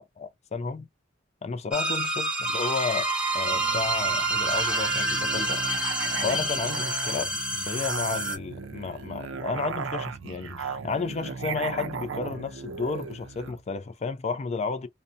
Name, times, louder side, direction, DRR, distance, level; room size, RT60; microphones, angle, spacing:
voice 1, 0.2-0.9 1.4-5.6 6.2-14.9, left 5 dB, 35° left, 0.4 m, -32 dB
sound 1, 1.7-8.4, right 2 dB, 5° right, 0.7 m, -28 dB
Musical instrument, 3.4-13.6, right 5 dB, 80° right, 0.4 m, -37 dB
2.6 x 2.1 x 2.5 m
head